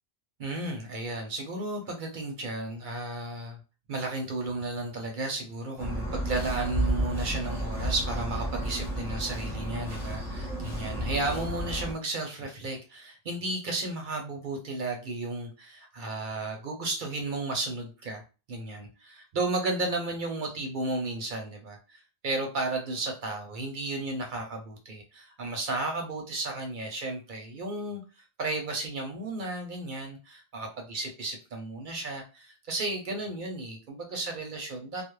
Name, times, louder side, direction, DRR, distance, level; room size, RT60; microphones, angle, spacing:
voice 1, 0.4-3.6 3.9-18.2 18.5-28.0 28.4-35.0, right 2 dB, 55° right, 2 dB, 0.7 m, -33 dB
sound 1, 5.8-11.9, right 1 dB, ahead, 0.9 m, -32 dB
2.3 x 2.0 x 3.1 m, 0.33 s
omnidirectional pair, 1.1 m